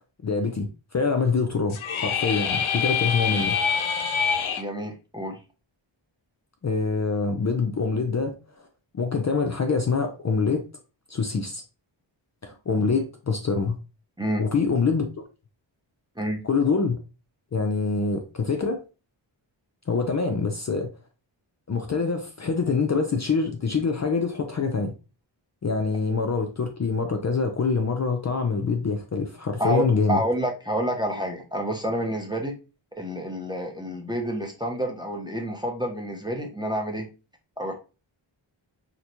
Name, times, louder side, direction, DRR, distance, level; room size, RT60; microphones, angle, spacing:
voice 1, 0.2-3.6 6.6-8.7 8.9-10.6 11.1-11.6 12.4-13.8 14.4-15.1 16.4-17.0 17.5-18.8 19.9-20.9 21.7-24.9 25.6-30.2, left 4 dB, 35° left, 0.5 m, -25 dB
sound 1, 1.7-4.6, left 7 dB, 80° left, 0.6 m, -25 dB
voice 2, 4.6-5.4 14.2-14.5 16.2-16.4 29.6-32.6 33.0-37.1 37.6-37.7, right 1 dB, 10° right, 0.6 m, -28 dB
3.9 x 2.1 x 2.9 m
wide cardioid pair, 95°, 48 cm